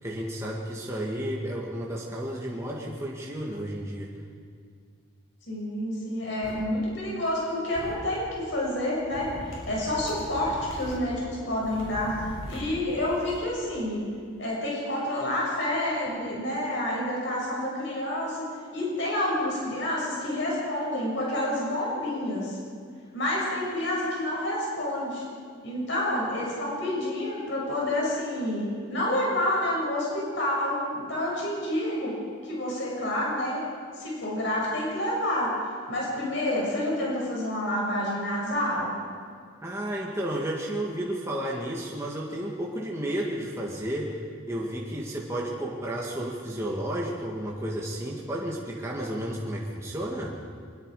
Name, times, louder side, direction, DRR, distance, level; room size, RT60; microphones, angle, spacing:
voice 1, 0.0-4.1 39.6-44.2 44.5-50.4, right 1 dB, 15° right, -3 dB, 2.0 m, -32 dB
voice 2, 5.5-9.3 9.7-12.2 12.5-14.1 14.4-18.4 18.7-22.6 23.1-25.2 25.6-32.1 32.4-33.6 34.0-35.5 35.9-39.0, left 1 dB, 60° left, -4 dB, 6.5 m, -28 dB
sound 1, 6.4-6.5 7.7-7.9 9.1-10.9 11.6-13.4, equal, 80° left, 7.1 m, -40 dB
23.5 x 22.5 x 5.0 m, 2.1 s
head